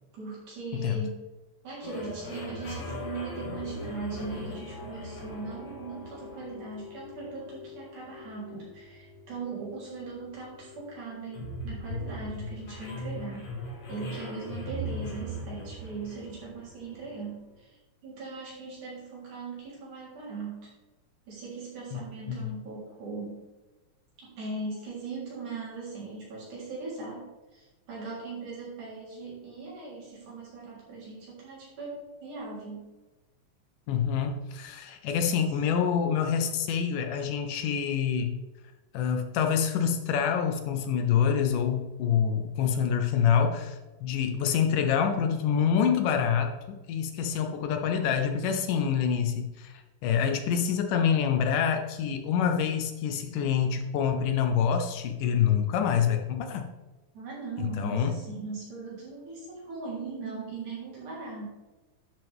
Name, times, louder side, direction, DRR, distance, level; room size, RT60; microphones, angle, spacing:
voice 1, 0.1-1.2 1.6-13.4 13.9-20.7 21.3-23.4 24.2-32.9 57.1-61.5, right 4 dB, 60° right, -6 dB, 5.1 m, -39 dB
sound 1, 1.8-17.2, left 1 dB, 55° left, 2.9 m, -40 dB
voice 2, 21.9-22.5 33.9-38.4 38.9-49.7 50.0-56.7 57.8-58.1, left 7 dB, 75° left, 5 dB, 2.3 m, -26 dB
11.0 x 7.4 x 3.5 m, 1.2 s
omnidirectional pair, 4.0 m